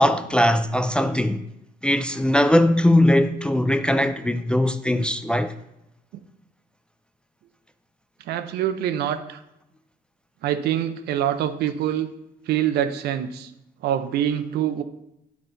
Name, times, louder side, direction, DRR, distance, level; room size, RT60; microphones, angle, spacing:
voice 1, 0.0-1.4 1.8-5.5, left 1 dB, 5° left, 0.3 m, -20 dB
voice 2, 8.3-9.4 10.4-12.1 12.5-13.5 13.8-14.8, right 10 dB, 75° right, 0.6 m, -25 dB
10.5 x 4.2 x 3.9 m
cardioid pair, 110°, 17 cm